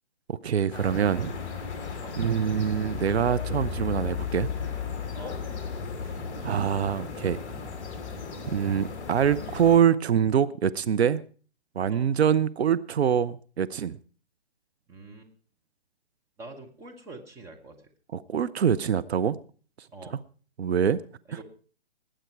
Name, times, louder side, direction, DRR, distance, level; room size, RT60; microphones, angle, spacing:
voice 1, 0.3-1.3 2.2-4.5 6.4-7.4 8.5-11.2 11.8-14.0 18.1-19.4 20.1-20.2 20.6-21.0, right 8 dB, 70° right, 0.7 m, -24 dB
sound 1, 0.7-9.8, left 6 dB, 20° left, 2.6 m, -35 dB
voice 2, 14.9-15.3 16.4-17.8 19.9-20.2 21.3-21.4, right 2 dB, 10° right, 1.1 m, -45 dB
19.0 x 9.0 x 4.6 m
hypercardioid pair, 150°, 33 cm